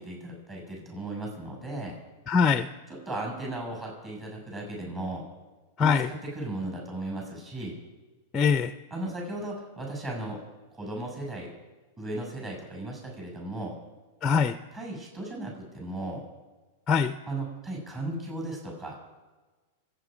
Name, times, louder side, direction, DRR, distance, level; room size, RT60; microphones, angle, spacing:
voice 1, 0.0-2.0 2.9-5.3 5.8-7.7 8.9-10.4 10.7-11.5 12.0-13.7 14.7-16.2 17.3-19.0, right 2 dB, 20° right, 0 dB, 6.6 m, -36 dB
voice 2, 2.3-2.7 5.8-6.1 8.3-8.7 14.2-14.6 16.9-17.1, left 6 dB, 20° left, 11 dB, 0.5 m, -22 dB
26.5 x 9.1 x 5.1 m, 1.3 s
hypercardioid pair, 135°, 0 cm